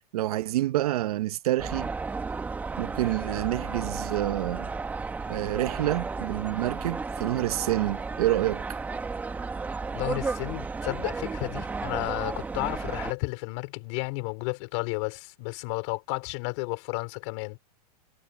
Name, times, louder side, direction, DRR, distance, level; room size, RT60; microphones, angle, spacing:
voice 1, 0.1-1.9 2.8-4.7 5.3-8.6, right 15 dB, 70° right, 1.0 m, -28 dB
sound 1, 1.6-13.1, right 4 dB, 10° right, 1.2 m, -33 dB
voice 2, 9.9-17.6, left 28 dB, 45° left, 3.9 m, -32 dB
supercardioid pair, 160°, 20 cm